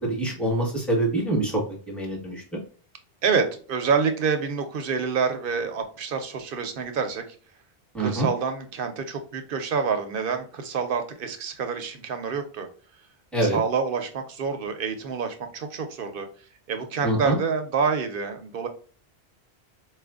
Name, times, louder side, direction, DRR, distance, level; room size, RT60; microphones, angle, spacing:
voice 1, 0.0-1.6 1.9-2.4 7.9-8.3 13.3-13.6 17.0-17.4, right 1 dB, ahead, -3 dB, 1.1 m, -25 dB
voice 2, 3.2-7.2 8.0-12.7 13.4-16.3 16.7-18.7, right 5 dB, 60° right, 7 dB, 0.7 m, -27 dB
4.3 x 2.5 x 2.3 m, 0.40 s
omnidirectional pair, 1.1 m